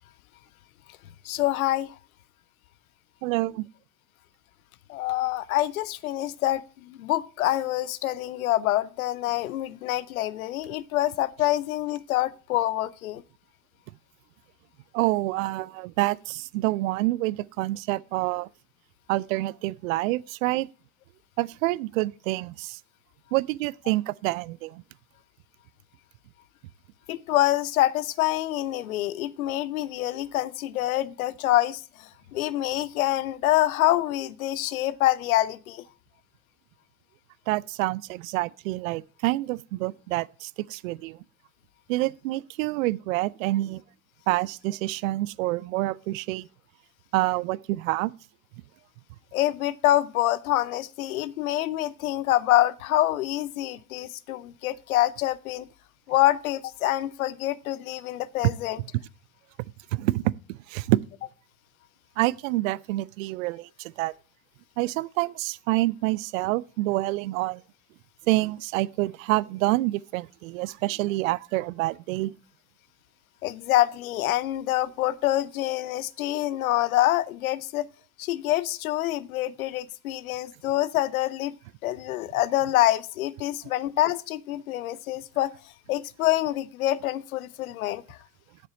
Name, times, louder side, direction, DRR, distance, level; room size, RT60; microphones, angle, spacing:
voice 1, 1.2-1.9 4.9-13.2 27.1-35.8 49.3-55.7 56.1-58.8 73.4-77.9 78.2-81.5 81.8-85.5 85.9-88.2, left 14 dB, 70° left, 0.7 m, -26 dB
voice 2, 3.2-3.6 14.9-18.5 19.1-20.7 21.4-22.8 23.3-24.8 37.5-41.2 41.9-43.8 44.3-46.5 47.1-48.1 59.9-60.3 60.7-61.0 62.2-64.1 64.8-67.6 68.3-72.3, right 19 dB, 65° right, 0.5 m, -27 dB
7.8 x 6.8 x 7.2 m
figure-of-eight pair, 60°, 44 cm